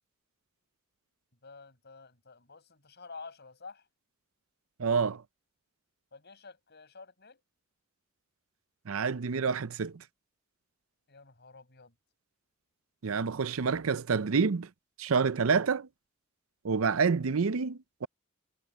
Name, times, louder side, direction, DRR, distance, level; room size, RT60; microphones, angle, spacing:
voice 1, 1.4-3.8 6.1-7.4 11.1-11.9, left 4 dB, 55° left, 7.4 m, -50 dB
voice 2, 4.8-5.2 8.9-10.0 13.0-14.7 15.0-15.9 16.6-18.1, right 5 dB, 85° right, 0.6 m, -28 dB
head